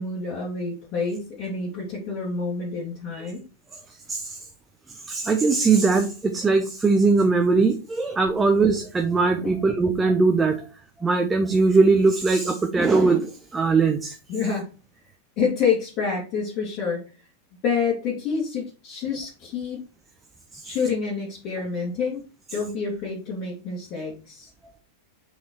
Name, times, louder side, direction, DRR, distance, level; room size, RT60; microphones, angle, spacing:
voice 1, 0.0-3.4 8.3-8.4 9.4-9.5 14.3-14.7 15.4-17.0 17.6-19.8 20.6-22.2 22.5-24.5, left 5 dB, 40° left, -5 dB, 2.3 m, -28 dB
voice 2, 5.1-10.6 11.0-14.2, right 4 dB, 15° right, 5 dB, 0.8 m, -20 dB
5.5 x 4.9 x 4.4 m, 0.34 s
figure-of-eight pair, 90°, 0 cm